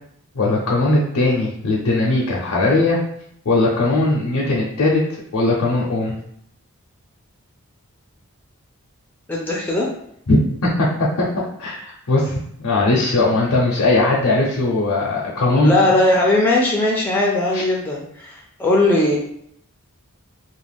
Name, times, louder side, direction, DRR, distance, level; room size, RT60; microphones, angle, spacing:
voice 1, 0.3-3.0 3.5-5.0 5.3-6.1 10.3-12.3 12.6-15.7 17.5-17.6, left 2 dB, 80° left, -3 dB, 0.5 m, -19 dB
voice 2, 9.3-9.9 15.5-19.2, left 2 dB, 10° left, -3 dB, 0.3 m, -18 dB
2.4 x 2.1 x 3.3 m, 0.70 s
head